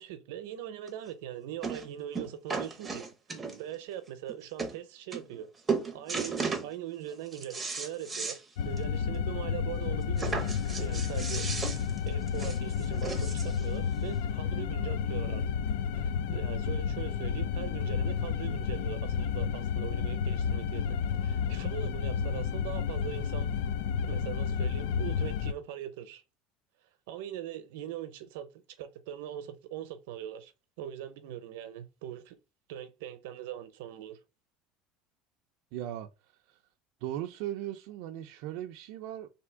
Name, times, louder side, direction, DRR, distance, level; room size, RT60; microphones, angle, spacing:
voice 1, 0.0-3.1 3.3-5.5 5.9-10.5 10.8-11.5 11.8-15.4 15.9-23.5 24.0-26.2 27.1-28.5 28.8-30.5 30.8-32.4 32.7-34.2, right 11 dB, 90° right, 0.7 m, -41 dB
sound 1, 0.9-1.0 1.6-1.9 2.1-3.8 4.3-4.4 4.6-4.8 5.1-5.4 5.7-6.7 7.1-8.4 8.8-8.9 9.2-9.3 10.2-13.6 14.5-14.6, right 4 dB, 10° right, 0.6 m, -35 dB
sound 2, 8.6-25.5, left 7 dB, 80° left, 0.4 m, -31 dB
voice 2, 35.7-36.1 36.5-36.6 37.0-39.3, right 12 dB, 60° right, 0.4 m, -38 dB
3.4 x 2.7 x 4.5 m
cardioid pair, 165°, 0 cm